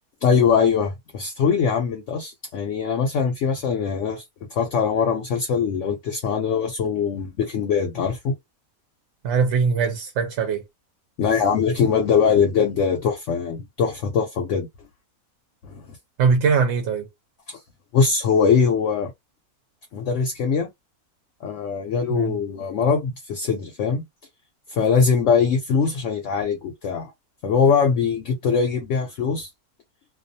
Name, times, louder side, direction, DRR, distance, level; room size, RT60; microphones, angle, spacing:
voice 1, 0.2-4.2 4.5-8.3 11.2-14.7 15.6-15.8 17.5-17.6 17.9-19.1 19.9-20.7 21.4-24.0 24.7-27.1 27.4-29.5, left 6 dB, 65° left, 0.8 m, -22 dB
voice 2, 9.2-10.6 16.2-17.1 22.1-22.4, right 5 dB, 65° right, 0.7 m, -21 dB
2.3 x 2.3 x 2.6 m
omnidirectional pair, 1.6 m